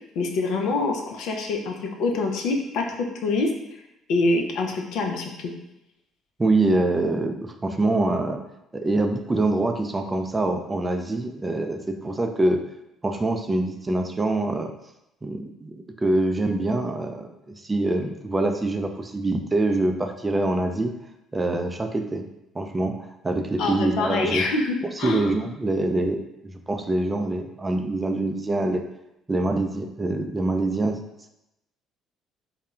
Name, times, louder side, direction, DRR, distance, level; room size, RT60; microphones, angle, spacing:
voice 1, 0.2-3.5 4.1-5.5 23.6-25.3, left 3 dB, 65° left, 2 dB, 0.4 m, -25 dB
voice 2, 6.4-8.4 8.7-12.6 13.0-14.7 15.2-20.9 21.3-22.2 22.5-24.4 25.0-28.8 29.3-31.0, right 2 dB, 25° right, 5 dB, 0.3 m, -25 dB
3.6 x 2.1 x 2.2 m, 0.88 s
hypercardioid pair, 50°, 0 cm